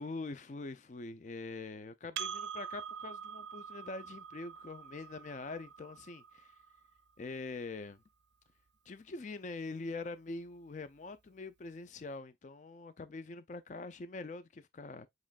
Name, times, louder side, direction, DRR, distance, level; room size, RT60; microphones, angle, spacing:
voice 1, 0.0-6.5 7.2-8.0 8.9-15.1, left 3 dB, 40° left, 0.4 m, -44 dB
Percussion, 2.2-7.0, right 8 dB, 80° right, 0.4 m, -45 dB
7.3 x 3.1 x 2.3 m
head